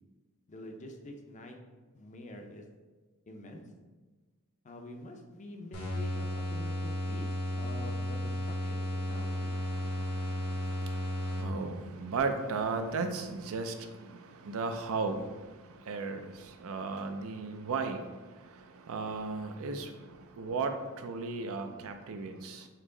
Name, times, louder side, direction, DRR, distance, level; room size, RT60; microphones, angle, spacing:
voice 1, 0.5-1.7 1.9-2.7 3.3-3.7 4.6-9.6, left 1 dB, 35° left, 3 dB, 0.5 m, -46 dB
sound 1, 5.7-11.8, left 1 dB, 85° left, 1.3 m, -34 dB
voice 2, 9.1-15.3 15.7-18.0 18.3-22.7, right 4 dB, 70° right, 7 dB, 0.5 m, -36 dB
4.5 x 2.9 x 3.8 m, 1.3 s
head